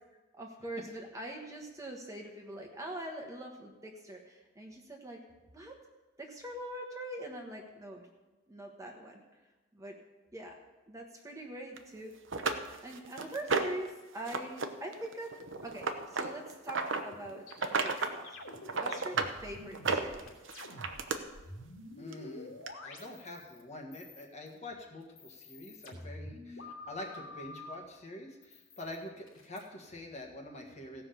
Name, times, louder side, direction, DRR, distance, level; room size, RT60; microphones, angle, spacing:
voice 1, 0.3-5.2 5.5-5.7 6.2-8.0 8.5-9.2 9.7-10.0 10.3-10.5 10.9-12.1 12.5-15.3 15.6-18.3 18.7-20.3, right 1 dB, 15° right, 1 dB, 1.3 m, -43 dB
sound 1, 11.8-11.9 12.3-13.9 14.2-14.7 14.9-17.0 17.5-18.2 18.5-19.3 19.7-21.2 22.1-22.2 22.7-22.8, right 4 dB, 65° right, 0.9 m, -32 dB
sound 2, 17.1-21.0 21.3-23.6 23.9-24.6 25.0-27.7 28.4-29.6, left 2 dB, 80° left, 2.9 m, -48 dB
voice 2, 22.0-22.5 22.8-31.1, left 1 dB, 35° left, 1 dB, 1.7 m, -46 dB
16.5 x 5.8 x 6.9 m, 1.1 s
head